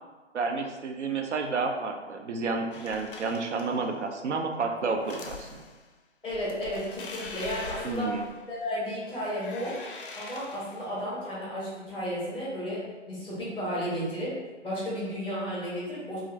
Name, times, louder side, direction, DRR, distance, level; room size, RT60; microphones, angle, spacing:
voice 1, 0.3-5.6 7.8-8.2, right 4 dB, 75° right, 4 dB, 0.5 m, -30 dB
sound 1, 2.7-3.9 4.9-5.8 6.3-8.7 9.1-10.9, left 3 dB, 50° left, 0.4 m, -43 dB
voice 2, 6.2-8.1 8.5-9.8 10.1-16.2, equal, 5° right, -8 dB, 0.6 m, -33 dB
2.4 x 2.4 x 3.2 m, 1.2 s
figure-of-eight pair, 135°, 36 cm